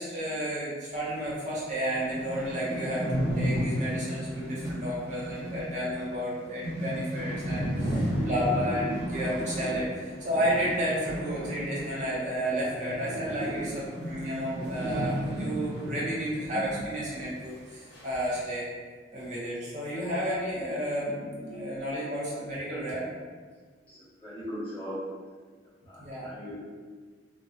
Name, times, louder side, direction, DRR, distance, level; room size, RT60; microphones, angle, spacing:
voice 1, 0.0-18.6 19.1-23.0 26.0-26.3, equal, 45° right, -7 dB, 0.9 m, -32 dB
sound 1, 1.3-1.4 1.7-1.8 1.9-12.2 12.4-16.9 17.2-17.3 17.9-18.4, equal, 70° left, 1.0 m, -33 dB
voice 2, 23.9-25.0 25.9-26.6, equal, 30° left, -11 dB, 1.3 m, -39 dB
3.3 x 2.1 x 2.7 m, 1.5 s
head